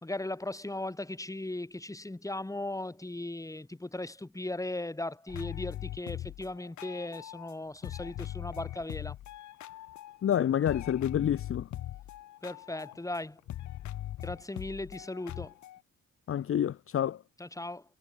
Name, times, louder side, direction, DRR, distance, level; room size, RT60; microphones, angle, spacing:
voice 1, 0.0-9.2 12.4-13.4 14.2-15.5 17.4-17.8, left 2 dB, 10° left, 3.4 m, -37 dB
sound 1, 5.3-7.5 7.8-10.3 10.6-15.8, left 13 dB, 70° left, 1.0 m, -41 dB
voice 2, 10.2-11.7 16.3-17.2, left 10 dB, 45° left, 0.8 m, -28 dB
cardioid pair, 90°, 30 cm